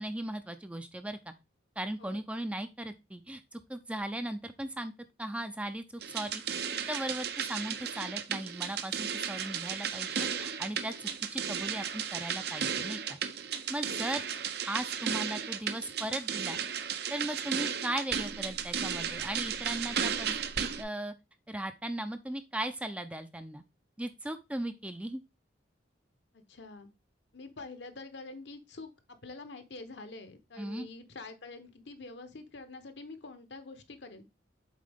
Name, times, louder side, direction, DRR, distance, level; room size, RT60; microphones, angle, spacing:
voice 1, 0.0-1.3 1.8-4.9 5.2-6.6 6.9-13.2 13.7-14.2 14.6-16.6 17.1-20.3 20.6-21.1 21.5-23.6 24.0-25.2 30.6-30.9, right 1 dB, 5° right, 9 dB, 0.4 m, -37 dB
sound 1, 6.0-20.8, right 7 dB, 55° right, 0.6 m, -34 dB
voice 2, 26.3-26.9 27.3-34.3, left 3 dB, 70° left, 9 dB, 1.0 m, -46 dB
7.4 x 4.3 x 3.5 m, 0.25 s
head